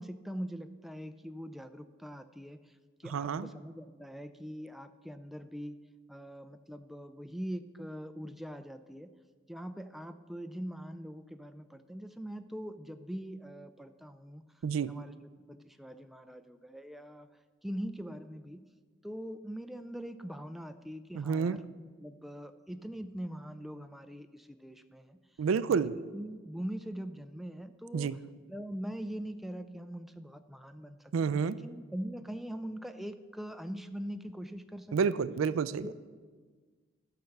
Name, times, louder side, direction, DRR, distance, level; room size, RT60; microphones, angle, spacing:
voice 1, 0.0-2.6 3.0-5.8 6.1-9.1 9.5-14.4 14.9-15.1 15.5-17.3 17.6-18.6 19.0-21.7 22.0-25.2 25.8-28.1 28.5-31.0 31.3-35.0 35.8-35.9, equal, ahead, 9 dB, 0.3 m, -42 dB
voice 2, 3.0-3.5 14.6-14.9 21.1-21.6 25.4-26.0 27.9-28.2 31.1-31.6 34.9-35.9, right 6 dB, 90° right, 16 dB, 0.4 m, -29 dB
12.0 x 5.8 x 6.5 m, 1.5 s
head